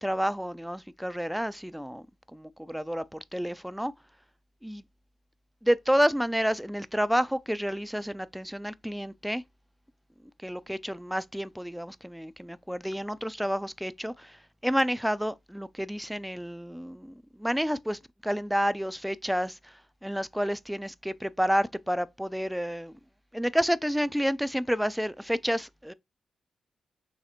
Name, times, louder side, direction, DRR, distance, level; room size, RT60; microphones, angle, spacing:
voice 1, 0.0-2.0 2.3-3.9 4.6-4.8 5.6-9.4 10.4-14.4 14.6-19.7 20.0-22.9 23.3-25.9, equal, 5° right, 0.4 m, -29 dB
6.3 x 2.9 x 2.4 m
cardioid pair, 60°, 0 cm